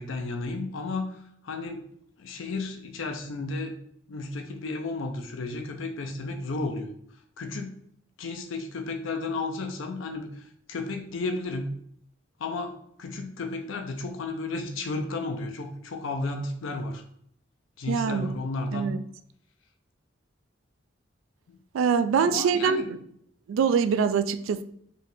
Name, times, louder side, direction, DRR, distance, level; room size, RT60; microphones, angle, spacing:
voice 1, 0.0-1.8 2.2-3.7 4.1-6.9 7.4-7.8 8.2-11.7 12.4-12.7 13.0-17.0 17.8-18.9 21.5-21.6 22.2-22.9, left 3 dB, 90° left, 0.5 m, -33 dB
voice 2, 17.9-18.3 18.7-19.0 21.7-23.0 23.5-24.6, right 6 dB, 85° right, 0.3 m, -24 dB
4.0 x 2.7 x 3.5 m
head